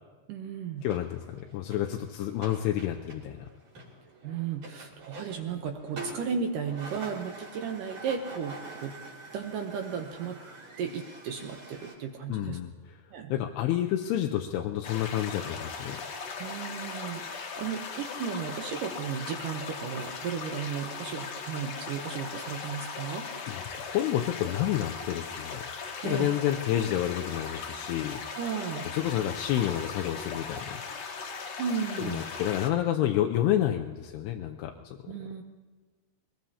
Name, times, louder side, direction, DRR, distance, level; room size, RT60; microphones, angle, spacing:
voice 1, 0.3-0.9 4.2-8.9 9.3-10.4 10.8-12.6 13.1-13.3 16.4-23.3 26.0-26.4 28.3-28.9 31.6-32.3 35.1-35.4, right 6 dB, 70° right, 4 dB, 2.1 m, -34 dB
voice 2, 0.8-3.5 12.3-12.7 13.3-16.0 23.5-25.7 26.0-28.2 28.9-30.8 32.0-35.1, left 12 dB, 85° left, 3 dB, 2.7 m, -29 dB
sound 1, 0.8-11.9, right 2 dB, 55° right, 4.4 m, -46 dB
sound 2, 14.8-32.7, left 5 dB, 55° left, 2.0 m, -39 dB
22.5 x 20.0 x 2.9 m, 1.4 s
omnidirectional pair, 4.6 m